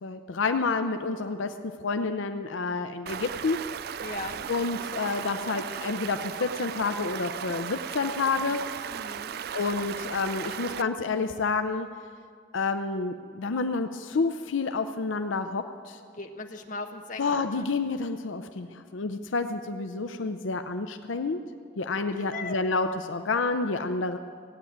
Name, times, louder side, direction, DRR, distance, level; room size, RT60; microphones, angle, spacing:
voice 1, 0.0-1.5 1.8-3.6 4.5-8.6 9.5-11.9 12.5-16.0 17.2-21.4 21.8-24.2, left 4 dB, 80° left, 8 dB, 0.6 m, -29 dB
Stream, 3.1-10.8, right 8 dB, 55° right, 0.3 m, -36 dB
voice 2, 4.0-4.4 8.9-9.3 16.1-17.7 22.1-22.5, left 3 dB, 40° left, 4 dB, 1.1 m, -38 dB
16.5 x 8.6 x 9.3 m, 2.1 s
head